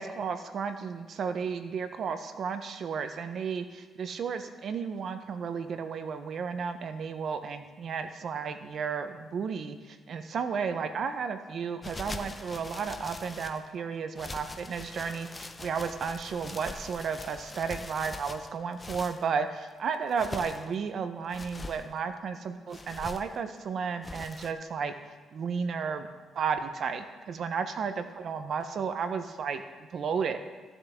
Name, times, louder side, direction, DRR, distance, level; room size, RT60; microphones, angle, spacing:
voice 1, 0.0-24.9 25.3-26.1 26.3-29.6 29.9-30.4, right 6 dB, 60° right, 9 dB, 0.7 m, -33 dB
sound 1, 11.8-13.7 14.2-19.2 19.9-20.7 21.3-21.8 22.7-23.4 24.0-24.5, left 2 dB, 20° left, 0.6 m, -42 dB
15.0 x 7.0 x 3.5 m, 1.4 s
cardioid pair, 90°, 0 cm